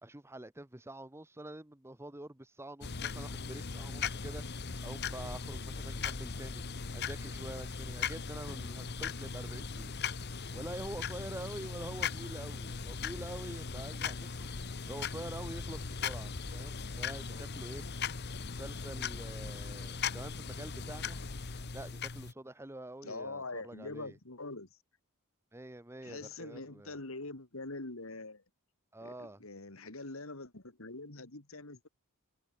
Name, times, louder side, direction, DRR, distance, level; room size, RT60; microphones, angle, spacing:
voice 1, 0.0-6.6 6.9-10.0 10.5-14.5 14.9-17.9 18.5-21.2 21.7-24.2 25.5-27.0 28.9-29.4, right 1 dB, 10° right, 0.9 m, -46 dB
sound 1, 2.8-22.3, left 5 dB, 50° left, 1.1 m, -39 dB
voice 2, 23.0-24.8 26.0-28.4 29.0-31.9, left 3 dB, 65° left, 2.4 m, -44 dB
head